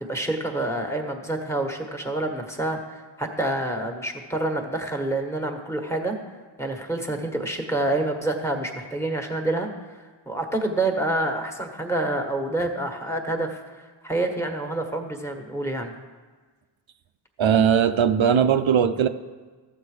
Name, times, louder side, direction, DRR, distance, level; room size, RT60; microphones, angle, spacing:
voice 1, 0.0-6.2 6.6-9.9 10.3-15.9, right 2 dB, 5° left, 3 dB, 1.4 m, -27 dB
voice 2, 17.4-19.1, right 8 dB, 85° right, 9 dB, 0.6 m, -19 dB
13.0 x 7.2 x 5.0 m, 1.4 s
wide cardioid pair, 55°, 45 cm